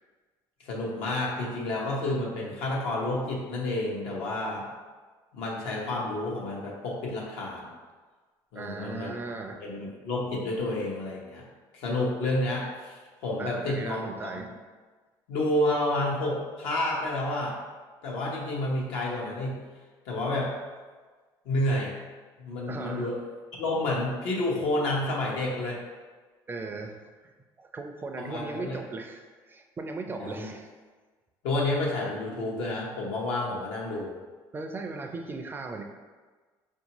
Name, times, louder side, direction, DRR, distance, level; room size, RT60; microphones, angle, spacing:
voice 1, 0.6-4.6 5.3-7.7 8.5-9.1 9.6-11.4 11.7-13.0 13.2-14.3 15.3-17.6 18.0-19.6 20.1-20.5 21.4-21.9 22.4-23.2 23.5-25.8 28.2-28.8 30.2-30.5 31.4-34.1, left 1 dB, 85° left, -3 dB, 0.9 m, -30 dB
voice 2, 8.6-9.6 13.4-14.5 22.7-23.1 26.5-27.0 27.2-30.7 34.5-35.8, right 3 dB, 25° right, 4 dB, 0.4 m, -37 dB
4.4 x 2.6 x 2.9 m, 1.4 s
cardioid pair, 110°, 9 cm